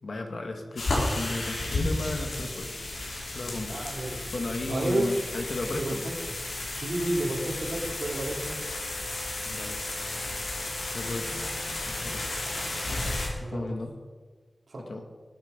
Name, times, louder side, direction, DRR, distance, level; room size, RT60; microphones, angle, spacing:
voice 1, 0.0-2.8 3.3-3.9 4.3-6.0 9.4-9.8 10.9-11.5 11.9-12.6 13.4-13.9 14.9-15.0, left 2 dB, 65° left, 3 dB, 2.0 m, -35 dB
sound 1, 0.8-13.3, left 2 dB, 85° left, 3.6 m, -33 dB
voice 2, 3.7-4.3 4.7-5.1 5.7-6.2 6.7-8.6 13.4-13.8 14.7-14.9, right 1 dB, 70° right, -2 dB, 3.0 m, -31 dB
sound 2, 7.4-13.4, right 1 dB, 10° left, 3.6 m, -47 dB
19.5 x 8.4 x 5.2 m, 1.5 s
wide cardioid pair, 85°, 0 cm